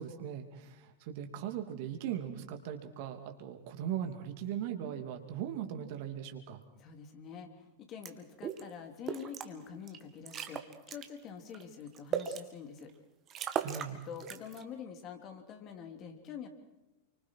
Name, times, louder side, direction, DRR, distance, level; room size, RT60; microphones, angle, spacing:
voice 1, 0.0-6.6 13.6-14.0, right 9 dB, 50° right, 5 dB, 2.8 m, -39 dB
voice 2, 6.8-12.9 14.1-16.5, left 7 dB, 35° left, 5 dB, 3.2 m, -46 dB
sound 1, 8.0-8.1 8.4-8.6 9.1-9.5 9.9-10.0 10.3-11.1 11.5-12.4 12.9-13.0 13.3-13.9 14.2-14.6, right 8 dB, 30° right, 2.0 m, -37 dB
29.5 x 25.0 x 4.7 m, 0.99 s
figure-of-eight pair, 90°, 0 cm